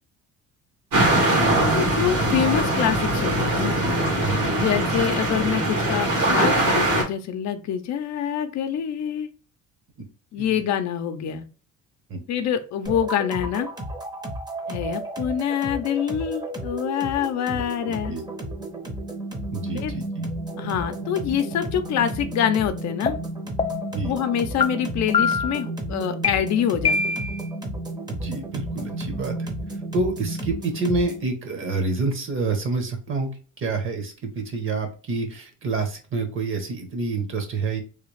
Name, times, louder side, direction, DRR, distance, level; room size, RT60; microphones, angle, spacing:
sound 1, 0.9-7.0, right 1 dB, 70° right, 1.6 m, -21 dB
voice 1, 1.6-3.8 4.6-9.3 10.3-11.4 12.3-13.7 14.7-18.1 19.7-19.9 20.6-23.2 24.1-27.2, left 9 dB, 65° left, 8 dB, 0.6 m, -25 dB
voice 2, 4.2-4.8 10.4-10.6 12.1-12.2 17.5-18.2 19.5-20.3 23.9-24.1 28.1-29.5 29.9-37.8, right 3 dB, 40° right, 5 dB, 1.0 m, -28 dB
sound 2, 12.9-31.3, right 1 dB, 15° right, 0.7 m, -33 dB
sound 3, 23.1-23.2 23.6-24.0 24.6-24.7 25.1-25.6 26.2-26.3 26.8-27.5, left 5 dB, 20° left, 0.4 m, -23 dB
3.3 x 2.3 x 3.2 m, 0.36 s
cardioid pair, 120°, 30 cm